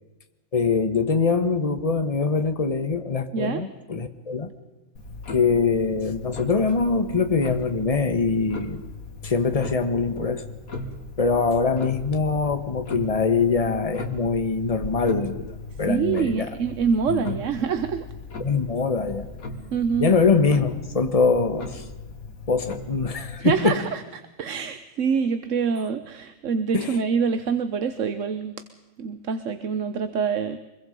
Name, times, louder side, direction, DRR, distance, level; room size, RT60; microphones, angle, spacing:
voice 1, 0.5-4.5 5.3-8.8 9.2-10.5 11.2-16.5 17.1-17.4 18.4-19.3 20.0-21.8 22.5-23.8 26.7-27.0, left 4 dB, 25° left, 8 dB, 1.4 m, -23 dB
voice 2, 3.3-3.6 15.8-18.1 19.7-20.1 23.4-28.6 29.0-30.6, right 6 dB, 65° right, 11 dB, 1.3 m, -25 dB
Clock, 5.0-23.4, left 3 dB, 90° left, 2.6 m, -38 dB
24.5 x 22.5 x 5.4 m, 1.1 s
omnidirectional pair, 1.4 m